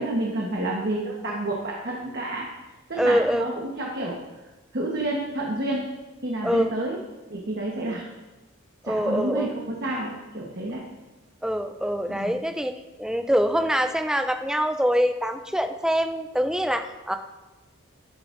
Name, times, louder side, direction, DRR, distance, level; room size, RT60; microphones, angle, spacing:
voice 1, 0.0-2.5 2.9-4.2 4.7-5.8 6.2-7.0 7.3-8.0 8.8-10.8 12.1-12.4, right 1 dB, 50° right, -2 dB, 1.3 m, -29 dB
voice 2, 3.0-3.5 6.4-6.7 8.8-9.5 11.4-12.7 13.0-17.2, equal, 5° right, 6 dB, 0.5 m, -24 dB
11.5 x 10.5 x 2.6 m, 1.1 s
head